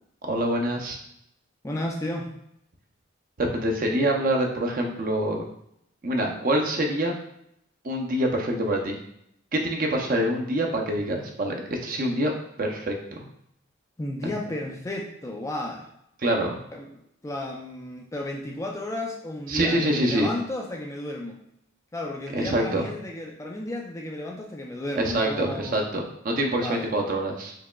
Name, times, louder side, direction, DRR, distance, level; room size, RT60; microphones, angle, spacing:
voice 1, 0.2-1.0 3.4-5.5 6.0-7.1 7.8-9.0 9.5-12.3 12.6-13.3 16.2-16.6 19.5-20.3 22.3-22.9 25.0-27.5, right 1 dB, 40° right, 1 dB, 0.5 m, -25 dB
voice 2, 1.6-2.4 14.0-15.9 16.7-16.9 17.2-21.4 21.9-25.8 26.6-26.9, left 1 dB, 15° left, 0 dB, 0.3 m, -33 dB
4.6 x 2.8 x 2.2 m, 0.74 s
head